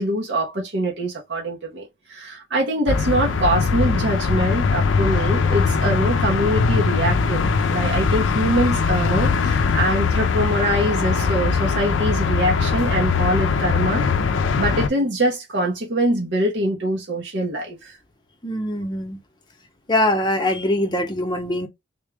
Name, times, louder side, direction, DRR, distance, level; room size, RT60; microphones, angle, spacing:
voice 1, 0.0-17.9, right 1 dB, 65° right, 0.9 m, -24 dB
sound 1, 2.9-14.9, left 5 dB, 75° left, 0.4 m, -21 dB
voice 2, 18.4-19.2 19.9-21.7, left 1 dB, 25° left, 0.7 m, -22 dB
3.6 x 2.2 x 3.4 m
head